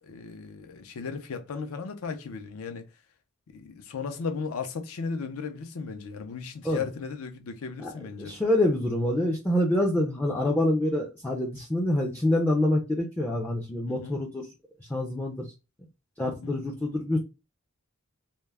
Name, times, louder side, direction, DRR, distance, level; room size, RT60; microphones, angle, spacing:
voice 1, 0.0-2.9 3.5-8.4 13.9-14.2 16.4-16.5, left 5 dB, 80° left, 0.5 m, -36 dB
voice 2, 8.2-14.5 14.9-15.5 16.2-17.2, left 1 dB, 10° left, 0.3 m, -26 dB
2.2 x 2.0 x 3.1 m
head